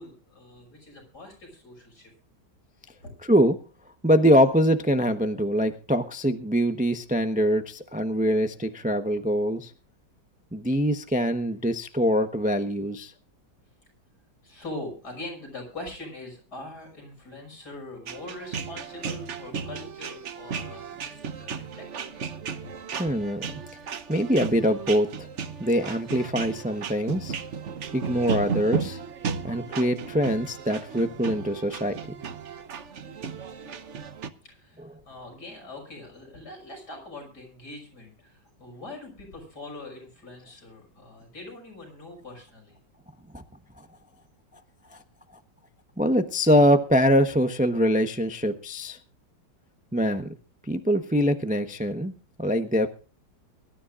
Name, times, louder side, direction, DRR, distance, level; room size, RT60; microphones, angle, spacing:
voice 1, 0.0-2.1 3.0-3.1 14.4-22.2 22.6-22.7 33.3-33.8 34.4-42.8, left 2 dB, 60° left, 1 dB, 6.7 m, -42 dB
voice 2, 3.3-3.6 4.0-9.7 10.5-13.1 23.0-23.5 24.1-25.3 25.6-27.3 27.9-29.0 29.4-32.0 43.3-43.4 44.9-45.0 46.0-49.0 49.9-50.3 50.7-52.9, equal, 10° right, 8 dB, 0.6 m, -23 dB
sound 1, 18.1-34.3, right 6 dB, 50° right, 1.0 m, -35 dB
23.0 x 13.0 x 2.5 m, 0.37 s
omnidirectional pair, 1.9 m